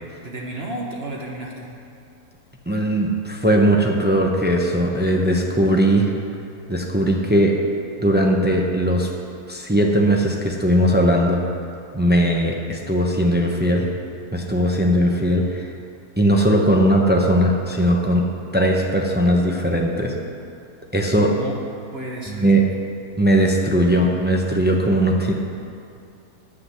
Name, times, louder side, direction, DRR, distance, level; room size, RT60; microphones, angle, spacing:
voice 1, 0.2-1.7 21.3-21.6 21.9-22.6, right 1 dB, 40° right, -1 dB, 1.3 m, -32 dB
voice 2, 2.7-6.1 6.7-7.6 8.0-9.1 9.5-11.4 11.9-13.9 14.3-15.7 16.2-18.2 18.5-20.1 20.9-21.3 22.3-22.6 23.2-25.3, right 1 dB, 15° right, 0 dB, 0.3 m, -19 dB
8.6 x 7.8 x 6.8 m, 2.5 s
omnidirectional pair, 1.7 m